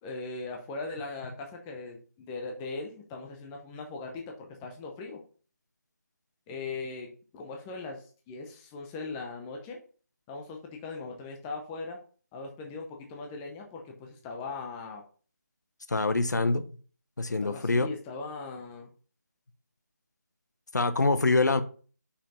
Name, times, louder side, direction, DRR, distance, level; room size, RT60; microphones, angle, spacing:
voice 1, 0.0-5.2 6.5-9.8 10.3-12.0 12.3-15.0 17.3-18.9, left 3 dB, 10° left, 0.7 m, -39 dB
voice 2, 15.9-16.6 17.2-17.9 20.7-21.6, left 3 dB, 70° left, 1.0 m, -25 dB
5.8 x 5.0 x 5.4 m
figure-of-eight pair, 165°, 10 cm